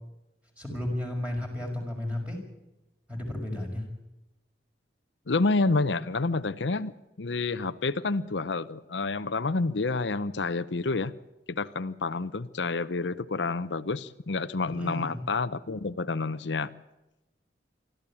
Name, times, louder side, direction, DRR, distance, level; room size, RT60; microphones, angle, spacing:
voice 1, 0.6-2.4 3.1-3.8 14.7-15.2, left 1 dB, 10° right, 1 dB, 5.8 m, -33 dB
voice 2, 5.3-11.1 11.5-16.7, left 3 dB, 85° left, 13 dB, 0.8 m, -29 dB
25.0 x 13.5 x 8.6 m, 0.98 s
head